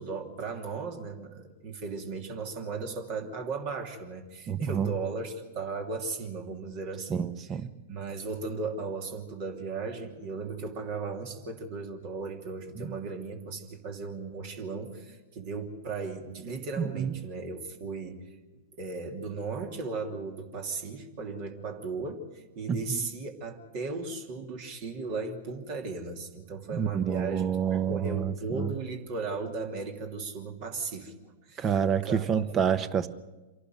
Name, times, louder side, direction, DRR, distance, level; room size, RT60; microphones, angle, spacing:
voice 1, 0.0-7.3 7.9-31.8 32.0-32.2, right 4 dB, 50° right, 4 dB, 2.8 m, -36 dB
voice 2, 4.5-4.9 7.1-7.7 12.8-12.9 16.8-17.1 22.7-23.1 26.7-28.7 31.6-33.1, right 7 dB, 30° right, 14 dB, 1.0 m, -28 dB
26.5 x 11.5 x 9.2 m, 1.2 s
hypercardioid pair, 105°, 0 cm